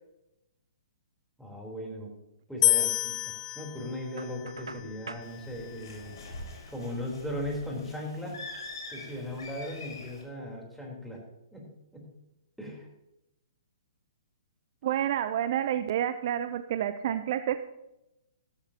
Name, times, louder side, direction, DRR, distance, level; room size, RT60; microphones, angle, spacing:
voice 1, 1.4-2.1 2.5-6.2 6.7-8.4 8.9-11.2 11.5-12.1 12.6-12.9, left 1 dB, ahead, -2 dB, 3.8 m, -38 dB
sound 1, 2.6-5.8, left 12 dB, 20° left, 0.4 m, -30 dB
Knock, 4.2-5.3, right 3 dB, 90° right, 0.7 m, -43 dB
Bird, 5.2-10.2, left 3 dB, 65° left, 4.5 m, -45 dB
voice 2, 14.8-17.6, right 10 dB, 50° right, 11 dB, 0.6 m, -29 dB
15.5 x 14.0 x 2.9 m, 0.90 s
figure-of-eight pair, 125°, 3 cm